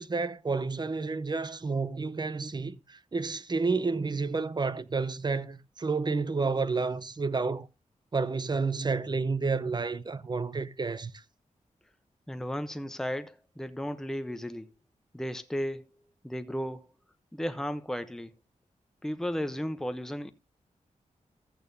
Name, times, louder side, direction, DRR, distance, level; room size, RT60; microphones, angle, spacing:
voice 1, 0.0-7.7 8.1-11.2, right 4 dB, 35° right, 0.7 m, -30 dB
voice 2, 12.3-14.7 15.1-15.9 16.2-16.9 17.3-18.3 19.0-20.3, equal, 5° left, 0.7 m, -34 dB
14.0 x 8.7 x 2.7 m
wide cardioid pair, 85°, 13 cm